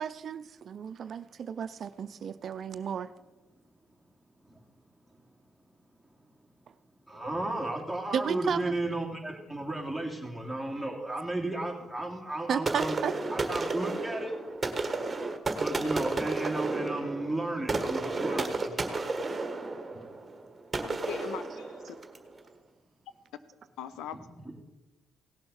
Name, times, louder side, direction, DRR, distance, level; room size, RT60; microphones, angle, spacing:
voice 1, 0.0-3.1 8.1-8.8 12.5-13.1, right 7 dB, 55° right, 12 dB, 0.5 m, -33 dB
voice 2, 7.1-13.0 13.3-14.3 15.6-19.1 24.1-24.2, right 2 dB, 5° left, 2 dB, 2.9 m, -34 dB
sound 1, 12.7-22.3, right 3 dB, 25° right, 1.6 m, -32 dB
voice 3, 20.8-22.0 23.8-24.2, left 10 dB, 85° left, 14 dB, 0.7 m, -40 dB
17.0 x 7.3 x 6.4 m, 1.1 s
cardioid pair, 90°, 0 cm